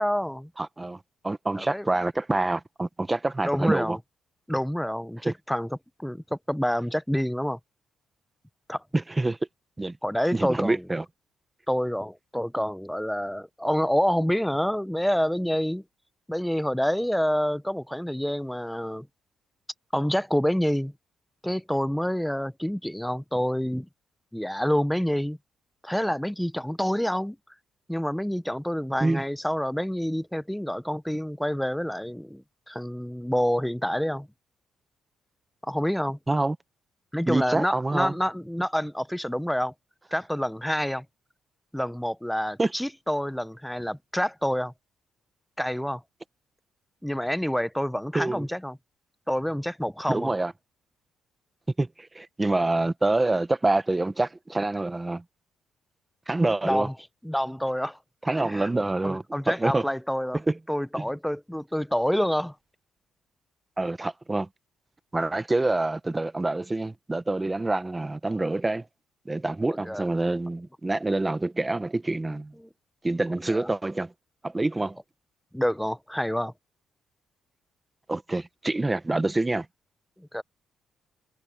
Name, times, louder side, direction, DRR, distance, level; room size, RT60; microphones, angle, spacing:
voice 1, 0.0-0.5 1.6-1.9 3.4-4.0 4.5-5.7 6.0-7.6 8.7-8.8 10.0-10.8 11.7-15.8 16.3-19.1 19.9-20.9 21.4-23.9 24.3-25.4 25.8-27.4 27.9-34.3 35.6-36.2 37.1-39.7 40.1-41.0 41.7-44.7 45.6-46.0 47.0-48.8 49.3-50.3 56.6-56.9 57.2-58.0 58.4-58.7 59.0-60.4 60.7-62.5 69.8-70.1 72.6-72.7 73.5-73.7 75.5-76.5 80.2-80.4, equal, ahead, 0.6 m, -27 dB
voice 2, 0.6-4.0 5.3-5.4 8.9-9.4 9.8-10.0 10.3-11.0 29.0-29.2 36.3-36.6 37.3-38.1 42.6-42.7 48.1-48.5 50.1-50.5 51.8-55.2 56.3-56.9 58.2-59.9 60.5-60.6 61.0-61.1 63.8-64.5 65.1-68.8 69.2-72.5 73.0-74.1 74.4-75.0 78.1-79.7, right 2 dB, 15° right, 0.9 m, -26 dB
cardioid pair, 140°, 0 cm